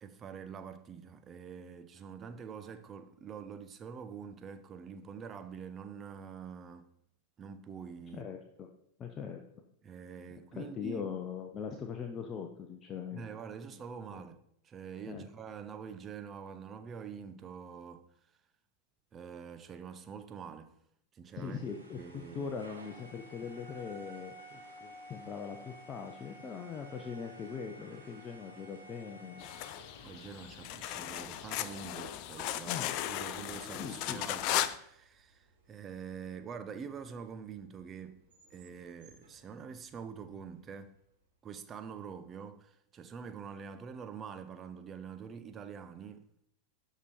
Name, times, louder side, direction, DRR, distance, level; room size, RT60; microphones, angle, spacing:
voice 1, 0.0-6.9 7.4-8.3 9.8-11.1 13.1-14.4 14.6-18.1 19.1-20.7 21.1-21.6 22.0-22.5 30.0-38.2 38.5-40.9 41.4-46.3, right 6 dB, 25° right, 0.8 m, -46 dB
voice 2, 8.1-8.7 9.0-9.4 10.5-13.3 13.7-13.8 14.1-14.2 15.1-15.2 21.3-29.4 32.7-33.0 33.8-34.3, left 6 dB, 25° left, 0.9 m, -41 dB
sound 1, 21.4-31.2, right 1 dB, 90° right, 2.4 m, -52 dB
sound 2, 29.4-34.8, left 13 dB, 45° left, 0.5 m, -36 dB
Train / Sliding door, 30.9-40.9, right 2 dB, 55° right, 3.4 m, -59 dB
12.0 x 5.1 x 4.4 m
figure-of-eight pair, 90°, 0 cm